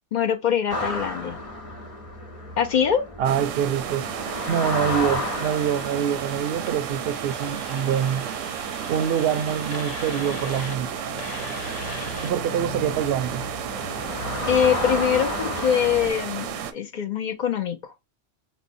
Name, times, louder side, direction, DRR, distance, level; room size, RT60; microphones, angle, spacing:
voice 1, 0.1-1.4 2.6-3.0 14.4-17.8, left 8 dB, 60° left, 0.5 m, -23 dB
sound 1, 0.7-16.1, left 2 dB, 30° left, 1.0 m, -34 dB
voice 2, 3.2-4.1 4.5-8.3 8.9-10.9 12.2-13.4, right 9 dB, 65° right, 0.7 m, -25 dB
sound 2, 3.2-16.7, right 9 dB, 85° right, 0.9 m, -33 dB
sound 3, 4.4-14.8, left 2 dB, 85° left, 1.3 m, -40 dB
5.3 x 2.1 x 2.5 m
omnidirectional pair, 1.3 m